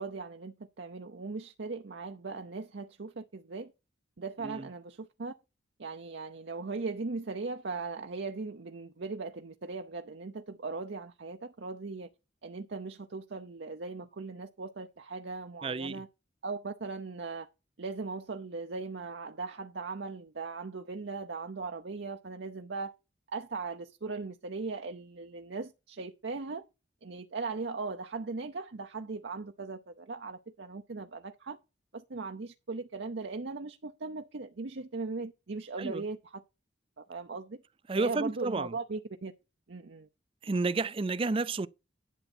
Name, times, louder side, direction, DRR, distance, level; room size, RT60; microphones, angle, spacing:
voice 1, 0.0-3.7 4.2-5.3 5.8-12.1 12.4-16.1 16.4-17.5 17.8-22.9 23.3-26.6 27.0-31.6 31.9-36.4 37.0-37.6 38.0-39.3 39.7-40.1, right 4 dB, 70° right, 0.7 m, -39 dB
voice 2, 15.6-16.0 35.8-36.0 37.9-38.7 40.4-41.7, right 3 dB, 30° right, 0.4 m, -31 dB
11.0 x 6.9 x 4.4 m
head